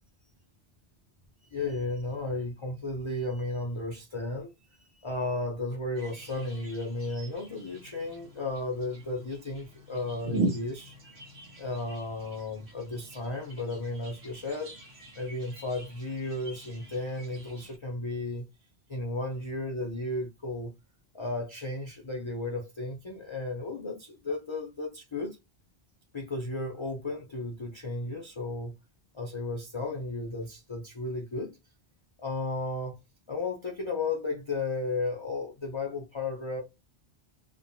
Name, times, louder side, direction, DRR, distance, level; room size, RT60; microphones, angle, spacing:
voice 1, 1.4-4.5 4.8-11.0 11.6-14.7 15.2-18.4 18.9-20.7 21.1-25.4 26.1-28.7 29.1-31.6 32.2-33.0 33.3-36.6, left 2 dB, 40° left, 0.4 m, -34 dB
sound 1, 6.0-17.8, right 3 dB, 70° right, 1.2 m, -40 dB
2.9 x 2.1 x 2.6 m
omnidirectional pair, 1.1 m